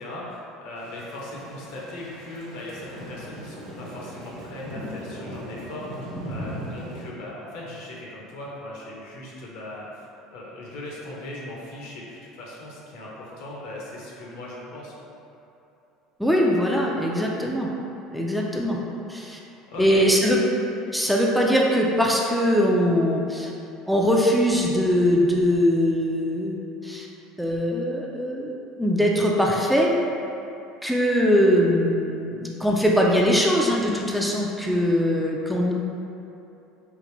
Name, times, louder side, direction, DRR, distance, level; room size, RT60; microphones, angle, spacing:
voice 1, 0.0-10.1 10.3-14.9 19.7-20.1, left 1 dB, 70° left, -4 dB, 0.8 m, -38 dB
Thunder / Rain, 0.8-7.1, equal, 85° right, 1.0 m, -38 dB
voice 2, 16.2-17.7 18.1-18.8 19.1-19.4 19.8-20.4 20.9-23.5 23.9-27.1 27.4-29.9 30.8-35.7, equal, ahead, -3 dB, 0.5 m, -21 dB
3.8 x 2.4 x 3.1 m, 2.9 s
hypercardioid pair, 75°, 0 cm